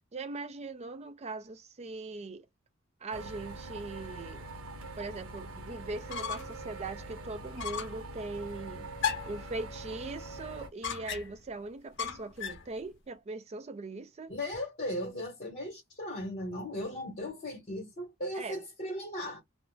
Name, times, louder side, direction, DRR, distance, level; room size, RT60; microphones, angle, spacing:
voice 1, 0.1-2.5 3.0-4.4 5.0-8.9 9.3-14.3 18.3-18.6, right 3 dB, 30° right, 0.4 m, -40 dB
sound 1, 3.1-10.7, right 2 dB, 75° right, 0.8 m, -43 dB
sound 2, 5.9-6.6 7.0-7.1 7.6-8.0 9.0-9.5 10.8-11.5 12.0-12.7, left 7 dB, 60° left, 0.6 m, -35 dB
voice 2, 14.3-19.4, left 1 dB, 40° left, 1.1 m, -37 dB
2.3 x 2.1 x 3.1 m
head